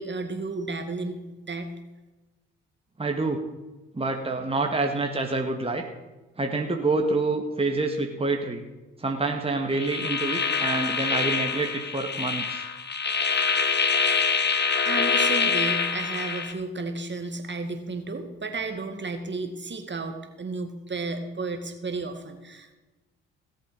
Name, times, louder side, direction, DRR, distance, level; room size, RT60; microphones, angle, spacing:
voice 1, 0.0-1.7 14.9-22.7, right 3 dB, 35° right, 6 dB, 2.2 m, -33 dB
voice 2, 3.0-3.4 3.9-5.8 6.4-8.6 9.0-12.6, right 3 dB, 15° right, 3 dB, 1.9 m, -27 dB
sound 1, 9.7-16.5, left 5 dB, 30° left, 1.6 m, -25 dB
17.5 x 7.9 x 5.4 m, 1.1 s
hypercardioid pair, 45°, 33 cm